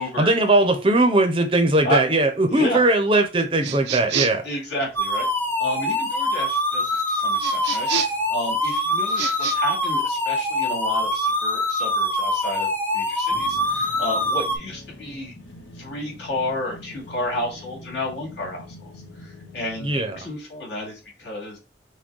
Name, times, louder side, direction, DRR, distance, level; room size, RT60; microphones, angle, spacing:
voice 1, 0.0-4.4 19.8-20.1, right 2 dB, 30° right, 0.6 m, -19 dB
voice 2, 2.5-2.8 4.4-5.3 5.6-7.9 8.3-15.3 15.7-18.9 19.2-21.6, left 1 dB, 65° left, 2.4 m, -31 dB
sound 1, 3.6-4.5 7.4-8.3 9.1-9.6, right 9 dB, 65° right, 0.4 m, -28 dB
sound 2, 5.0-14.6, left 1 dB, 10° left, 0.6 m, -24 dB
sound 3, 13.3-20.1, left 1 dB, 80° left, 1.1 m, -44 dB
6.1 x 2.2 x 3.7 m
head